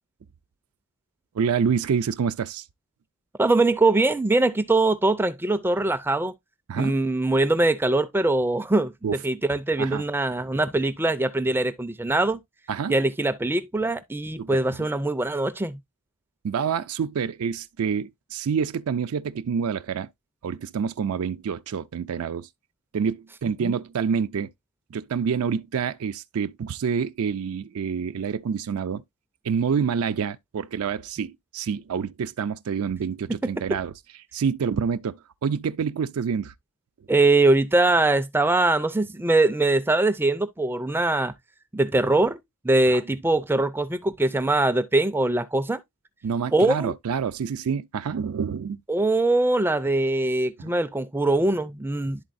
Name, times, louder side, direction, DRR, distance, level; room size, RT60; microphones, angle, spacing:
voice 1, 1.3-2.6 6.7-6.9 9.0-9.1 9.8-10.0 12.7-13.0 14.4-14.5 16.4-20.1 20.4-22.5 22.9-24.5 24.9-29.0 29.4-33.9 34.3-36.5 42.9-43.0 46.2-48.8 50.6-50.7, right 6 dB, 70° right, 0.4 m, -27 dB
voice 2, 3.4-6.3 6.8-8.9 9.2-12.4 12.9-15.8 23.6-23.7 33.4-33.5 37.1-41.3 41.7-45.8 46.5-46.9 48.9-52.2, right 2 dB, 10° right, 0.4 m, -22 dB
11.5 x 3.9 x 2.5 m
head